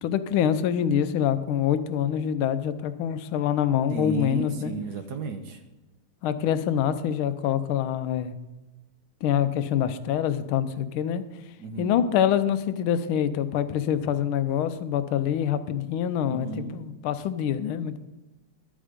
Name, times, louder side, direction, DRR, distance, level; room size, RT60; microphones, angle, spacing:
voice 1, 0.0-4.7 6.2-8.3 9.2-11.2 11.8-16.5 16.7-18.0, left 9 dB, 80° left, 12 dB, 1.5 m, -25 dB
voice 2, 3.9-5.6 11.6-12.0 16.3-16.8, right 3 dB, 60° right, 7 dB, 1.3 m, -33 dB
12.0 x 9.0 x 5.1 m, 1.1 s
omnidirectional pair, 2.3 m